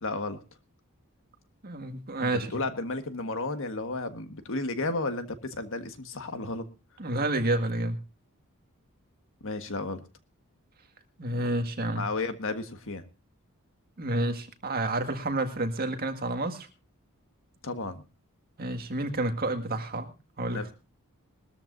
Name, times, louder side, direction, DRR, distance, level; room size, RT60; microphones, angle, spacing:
voice 1, 0.0-0.4 2.2-6.7 9.4-10.0 11.4-11.5 11.9-13.0 17.6-18.0 20.5-20.7, left 3 dB, 65° left, 8 dB, 1.6 m, -33 dB
voice 2, 1.6-2.5 7.0-8.0 11.2-12.0 14.0-16.7 18.6-20.1 20.4-20.7, right 2 dB, 45° right, 6 dB, 1.8 m, -29 dB
21.0 x 13.5 x 2.6 m, 0.29 s
head